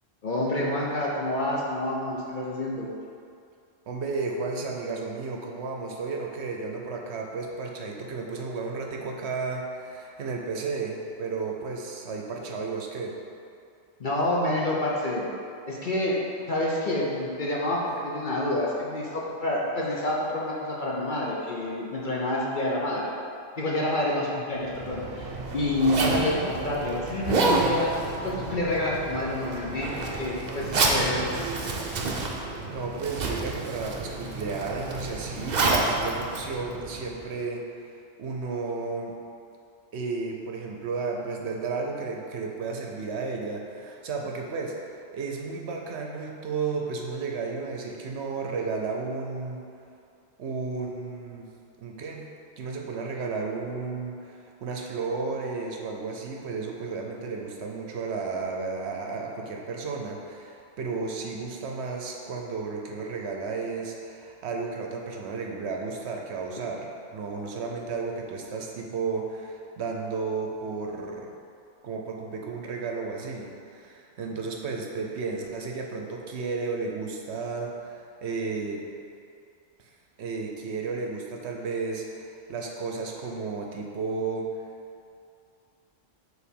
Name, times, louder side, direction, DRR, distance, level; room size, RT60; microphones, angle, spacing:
voice 1, 0.2-2.9 14.0-15.3 15.7-16.2 16.5-23.1 23.6-27.9 28.2-31.3, left 1 dB, 50° left, -4 dB, 0.8 m, -28 dB
voice 2, 3.9-13.2 32.7-37.6 38.2-39.2 39.9-49.6 50.4-51.5 51.8-52.3 52.6-71.3 71.8-78.8 79.8-79.9 80.2-84.5, right 4 dB, 65° right, 1 dB, 0.9 m, -33 dB
Zipper (clothing), 24.6-37.3, right 3 dB, 50° right, 0.6 m, -29 dB
4.8 x 4.1 x 5.2 m, 2.5 s
omnidirectional pair, 1.3 m